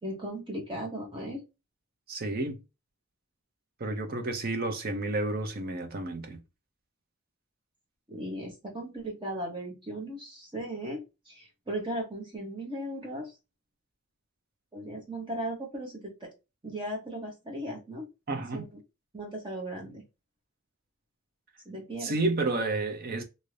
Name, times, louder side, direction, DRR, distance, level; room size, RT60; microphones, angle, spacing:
voice 1, 0.0-1.4 8.1-11.0 11.3-13.3 14.7-16.3 16.6-18.1 18.5-18.7 19.1-20.0 21.7-22.2, right 1 dB, 25° right, 0.9 m, -37 dB
voice 2, 2.1-2.6 3.8-6.4 18.3-18.6 22.0-23.2, right 2 dB, 45° right, 0.7 m, -30 dB
2.7 x 2.6 x 3.2 m
head